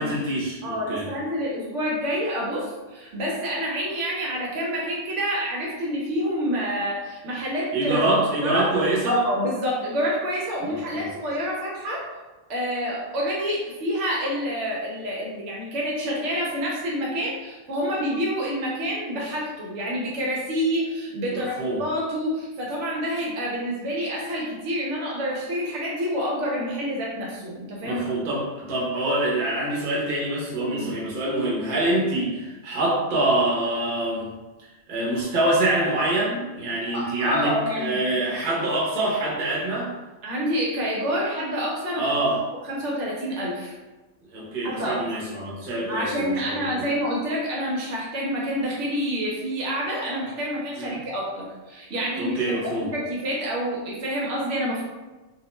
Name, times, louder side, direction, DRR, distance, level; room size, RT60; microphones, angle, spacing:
voice 1, 0.0-1.1 7.7-9.2 10.6-11.1 21.3-21.8 27.8-34.3 34.9-39.9 41.9-42.4 44.3-46.9 50.8-51.0 52.2-52.9, right 1 dB, 45° right, -5 dB, 0.8 m, -25 dB
voice 2, 0.6-8.0 8.4-8.7 9.1-12.0 12.5-28.1 30.6-30.9 35.0-35.1 36.9-38.0 40.2-42.1 42.5-43.7 44.6-45.0 45.9-54.8, equal, 75° right, -4 dB, 0.9 m, -28 dB
2.4 x 2.1 x 2.9 m, 1.2 s
omnidirectional pair, 1.3 m